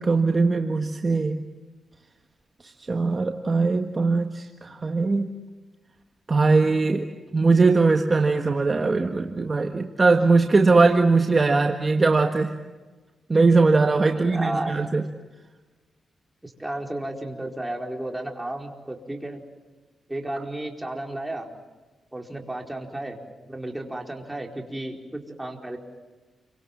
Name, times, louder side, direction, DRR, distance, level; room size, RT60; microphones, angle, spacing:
voice 1, 0.0-1.4 2.6-5.3 6.3-7.1 7.3-12.5 13.3-15.0, right 3 dB, 30° right, 5 dB, 1.6 m, -20 dB
voice 2, 14.1-14.7 16.4-19.4 20.1-21.5 22.1-23.2 23.5-25.8, right 1 dB, 10° right, 1 dB, 4.6 m, -33 dB
29.5 x 25.0 x 7.4 m, 1.3 s
cardioid pair, 90°, 0 cm